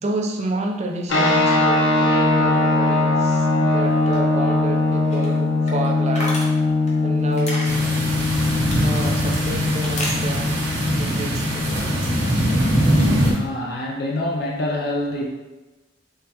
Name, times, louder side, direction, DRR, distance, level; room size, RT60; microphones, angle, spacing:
voice 1, 0.0-6.5 7.0-7.8 8.8-10.6 11.0-11.6, right 2 dB, 35° right, 0.4 m, -29 dB
sound 1, 1.1-12.3, left 2 dB, 90° left, 0.7 m, -21 dB
sound 2, 3.8-12.3 12.6-13.4, left 1 dB, 40° left, 0.8 m, -36 dB
sound 3, 7.6-13.3, right 1 dB, 75° right, 1.2 m, -22 dB
voice 2, 12.9-15.3, left 1 dB, 55° left, 0.5 m, -27 dB
3.6 x 3.5 x 2.9 m
head